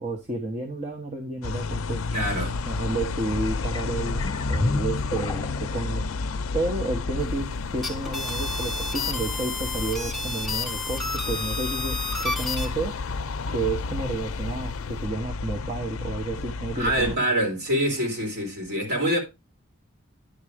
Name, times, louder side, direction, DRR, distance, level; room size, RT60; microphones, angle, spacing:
voice 1, 0.0-2.1 2.7-6.0 6.5-12.9 13.5-17.1, right 2 dB, 35° right, 1.1 m, -31 dB
sound 1, 1.4-17.2, left 4 dB, 85° left, 0.5 m, -31 dB
voice 2, 2.1-2.6 16.7-19.2, equal, 50° right, 3.7 m, -25 dB
sound 2, 3.3-5.9 6.5-6.6, left 1 dB, 20° left, 1.0 m, -31 dB
sound 3, 7.7-12.7, left 3 dB, ahead, 2.2 m, -31 dB
10.5 x 4.1 x 5.0 m
head